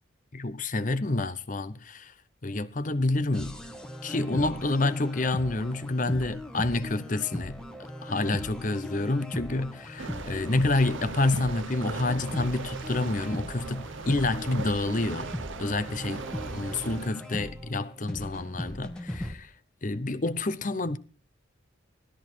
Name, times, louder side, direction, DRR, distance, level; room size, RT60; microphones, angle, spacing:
voice 1, 0.3-2.1 2.4-3.6 4.0-7.6 8.0-15.3 15.6-16.2 16.5-19.5 19.8-21.0, left 2 dB, 40° left, 0.8 m, -28 dB
sound 1, 3.3-19.3, left 1 dB, 5° left, 1.4 m, -39 dB
sound 2, 10.0-17.1, right 4 dB, 70° right, 0.7 m, -39 dB
17.0 x 13.0 x 4.5 m
head